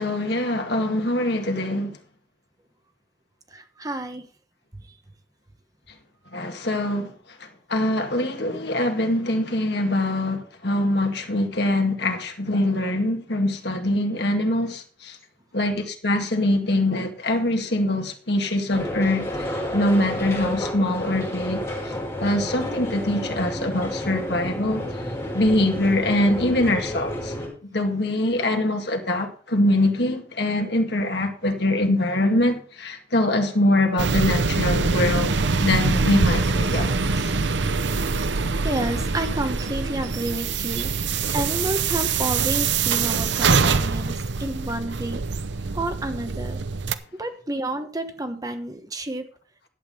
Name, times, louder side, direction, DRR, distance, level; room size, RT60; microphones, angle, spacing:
voice 1, 0.0-2.0 6.3-7.1 7.4-15.2 15.5-21.6 22.2-24.8 25.3-27.3 27.7-35.3 35.6-37.3, left 1 dB, 60° left, 2.0 m, -23 dB
voice 2, 3.5-4.2 6.3-6.4 38.2-38.4 38.6-45.2 45.7-46.6 47.2-49.3, right 1 dB, 20° right, 1.1 m, -30 dB
sound 1, 18.7-27.5, left 1 dB, 15° left, 6.4 m, -30 dB
sound 2, 34.0-46.9, right 4 dB, 70° right, 0.8 m, -24 dB
11.5 x 8.2 x 5.5 m
head